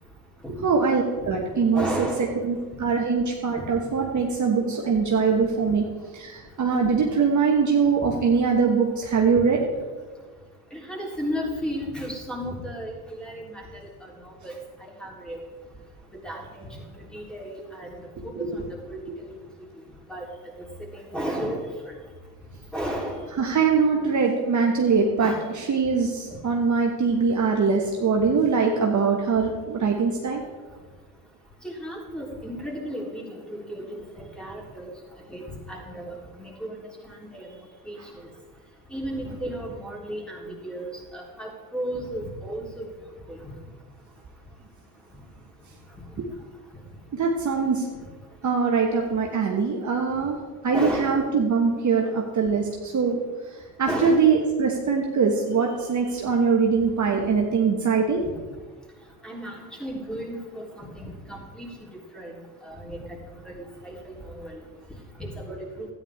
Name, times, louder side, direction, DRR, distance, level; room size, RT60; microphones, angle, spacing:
voice 1, 0.5-5.8 6.1-9.6 18.3-18.6 23.4-30.4 46.2-46.3 47.1-47.9 48.4-50.4 50.6-53.2 53.8-58.2, right 5 dB, 40° right, 0 dB, 1.4 m, -22 dB
voice 2, 1.7-2.3 3.6-3.7 10.7-13.9 14.2-14.5 14.8-15.4 16.2-16.7 17.1-17.9 18.2-19.4 20.1-20.2 20.8-21.9 22.7-23.2 25.2-25.4 31.6-34.9 35.3-37.5 37.8-38.0 38.9-42.9 43.3-43.4 50.7-51.2 53.9-54.3 59.2-61.7 62.1-62.3 62.6-63.0 63.4-64.6 65.2-65.9, equal, ahead, -3 dB, 3.5 m, -34 dB
13.0 x 9.9 x 3.6 m, 1.4 s
hypercardioid pair, 65°, 46 cm